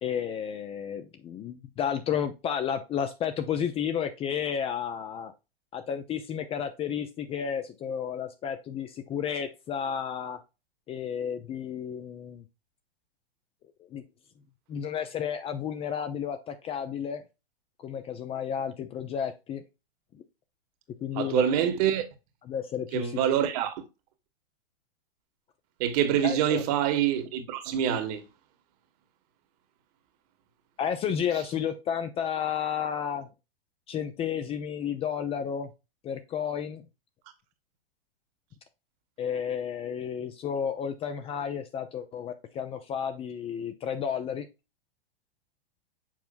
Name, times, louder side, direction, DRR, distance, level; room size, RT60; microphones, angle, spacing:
voice 1, 0.0-5.3 5.7-10.4 10.9-12.4 13.9-14.0 14.7-17.2 17.8-19.6 21.0-21.4 22.5-23.1 26.2-26.6 30.8-33.3 33.9-35.7 36.0-36.8 39.2-44.5, left 8 dB, 20° left, 0.7 m, -32 dB
voice 2, 21.1-22.0 22.9-23.8 25.8-28.2, right 10 dB, 40° right, 1.5 m, -26 dB
7.4 x 5.6 x 2.6 m
figure-of-eight pair, 100°, 30 cm